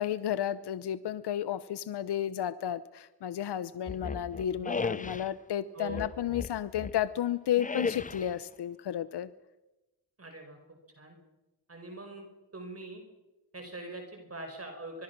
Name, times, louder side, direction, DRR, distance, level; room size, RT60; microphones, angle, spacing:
voice 1, 0.0-9.3, left 10 dB, 80° left, 15 dB, 0.8 m, -32 dB
sound 1, 3.9-5.3 5.9-7.0 7.6-8.4, left 4 dB, 20° left, 0.7 m, -36 dB
voice 2, 5.7-6.0 10.2-10.6 11.0-11.2 11.7-12.3 12.5-13.0 13.5-15.0, right 2 dB, 35° right, 4 dB, 5.3 m, -42 dB
25.0 x 21.0 x 6.0 m, 1.0 s
cardioid pair, 65°, 39 cm